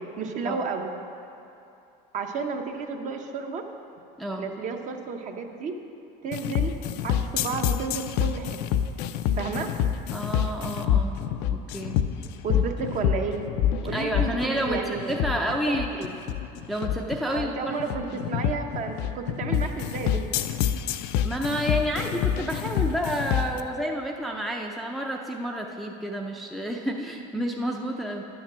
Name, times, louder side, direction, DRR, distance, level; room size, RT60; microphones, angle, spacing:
voice 1, 0.2-0.9 2.1-3.6 4.4-5.7 6.2-6.7 7.0-8.6 9.4-9.7 12.4-13.4 13.8-16.0 17.3-20.3, right 5 dB, 45° right, 4 dB, 0.9 m, -32 dB
sound 1, 6.3-23.6, left 9 dB, 70° left, 0.5 m, -27 dB
voice 2, 10.1-11.2 11.5-12.0 12.5-12.6 13.9-16.2 16.7-18.3 21.2-28.2, equal, ahead, 1 dB, 0.5 m, -30 dB
10.5 x 7.2 x 6.1 m, 2.7 s
cardioid pair, 140°, 18 cm